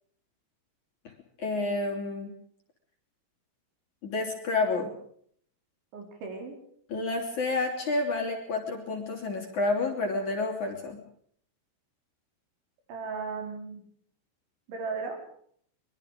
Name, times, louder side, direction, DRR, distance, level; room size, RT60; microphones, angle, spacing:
voice 1, 1.4-2.3 4.0-4.9 6.9-11.0, left 3 dB, 40° left, 1 dB, 4.2 m, -29 dB
voice 2, 5.9-6.6 12.9-13.9 14.7-15.2, right 4 dB, 60° right, 3 dB, 7.1 m, -36 dB
25.5 x 23.5 x 5.2 m, 0.63 s
omnidirectional pair, 6.0 m